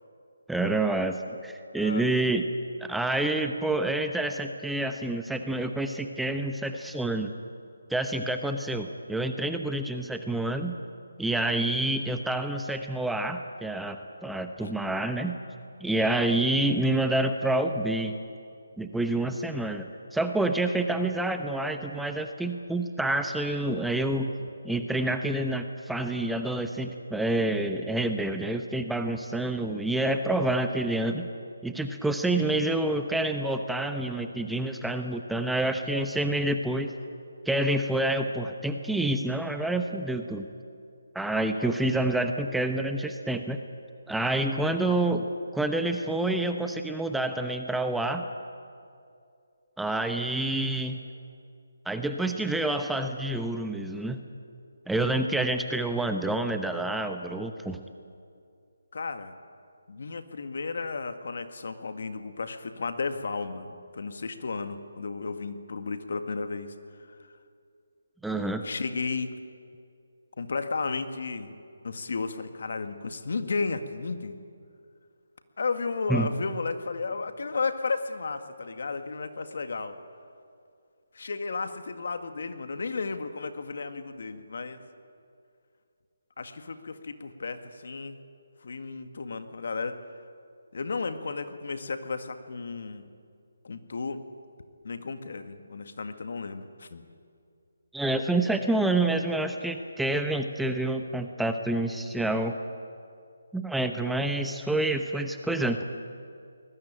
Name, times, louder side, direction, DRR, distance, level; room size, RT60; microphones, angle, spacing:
voice 1, 0.5-1.2 1.4-2.5 2.8-7.3 7.9-10.8 11.2-15.4 15.8-18.2 18.8-19.9 20.1-24.3 24.6-31.3 31.6-36.9 37.5-40.5 41.1-43.6 44.1-45.3 45.5-48.3 49.8-51.0 51.9-54.2 54.9-57.8 68.2-68.6 76.1-76.3 97.9-102.6 103.5-105.8, right 2 dB, ahead, 6 dB, 0.9 m, -28 dB
voice 2, 1.8-2.4 14.6-14.7 16.3-16.4 24.4-24.5 44.8-45.0 56.4-56.5 58.9-59.3 59.9-67.2 68.4-69.3 70.4-71.6 71.8-74.4 75.6-80.0 81.1-84.8 86.4-88.2 88.6-90.0 90.7-93.1 93.6-94.2 94.8-97.0, left 4 dB, 60° left, 8 dB, 1.9 m, -34 dB
23.0 x 20.5 x 9.0 m, 2.4 s
figure-of-eight pair, 155°, 0 cm